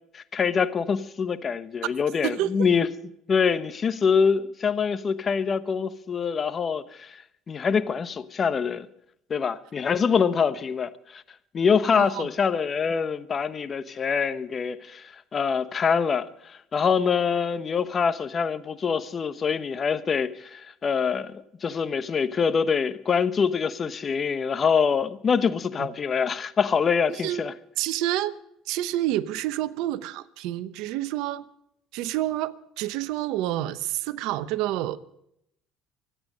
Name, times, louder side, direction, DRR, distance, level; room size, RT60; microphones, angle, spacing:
voice 1, 0.1-2.9 3.3-8.9 9.3-11.2 11.5-27.5, left 6 dB, 40° left, 1.0 m, -25 dB
voice 2, 2.2-2.7 11.9-12.3 25.8-25.9 27.2-27.4 27.8-28.4 28.7-31.4 31.9-35.0, right 14 dB, 75° right, 0.9 m, -28 dB
24.5 x 8.9 x 5.2 m
supercardioid pair, 80°, 0 cm